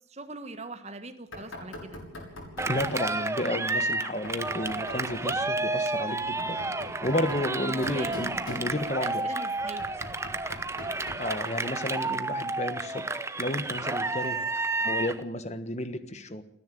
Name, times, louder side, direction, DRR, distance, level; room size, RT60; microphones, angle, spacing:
voice 1, 0.1-2.0 7.6-8.4 9.0-10.0, right 2 dB, 30° right, 9 dB, 1.5 m, -42 dB
Knock, 1.3-3.0 4.2-5.5 6.2-9.1 9.6-11.4, left 1 dB, 85° left, 6.3 m, -42 dB
voice 2, 2.6-6.6 7.0-9.3 11.2-14.5 14.8-16.4, left 1 dB, 35° left, 12 dB, 1.4 m, -32 dB
Cheering, 2.6-15.2, right 3 dB, 15° right, 0.8 m, -31 dB
29.0 x 10.5 x 9.2 m, 0.73 s
head